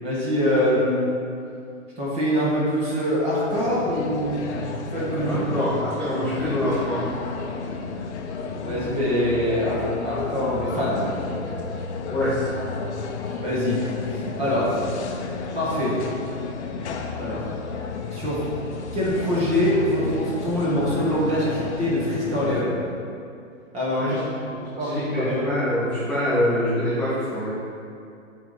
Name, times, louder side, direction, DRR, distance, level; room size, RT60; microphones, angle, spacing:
voice 1, 0.0-1.0 2.0-4.4 4.9-5.4 8.6-11.2 13.4-13.8 14.1-14.7 15.5-15.9 17.2-17.4 18.1-18.4 18.9-22.7 23.7-24.2 24.6-25.4, equal, 15° right, -7 dB, 1.6 m, -24 dB
sound 1, 3.5-22.6, left 4 dB, 55° left, 0.7 m, -32 dB
voice 2, 5.2-7.0 12.1-12.3 23.9-24.1 24.8-27.5, left 1 dB, 5° left, -13 dB, 0.5 m, -25 dB
7.0 x 3.6 x 5.3 m, 2.5 s
hypercardioid pair, 145°, 41 cm